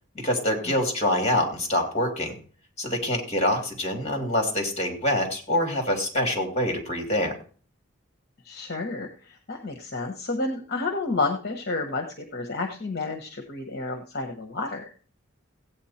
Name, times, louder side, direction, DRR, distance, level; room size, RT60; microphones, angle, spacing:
voice 1, 0.1-2.3 2.8-7.3, left 1 dB, 35° left, 3 dB, 2.9 m, -25 dB
voice 2, 8.4-14.9, left 3 dB, 50° left, 4 dB, 1.1 m, -30 dB
16.0 x 8.6 x 4.3 m, 0.44 s
head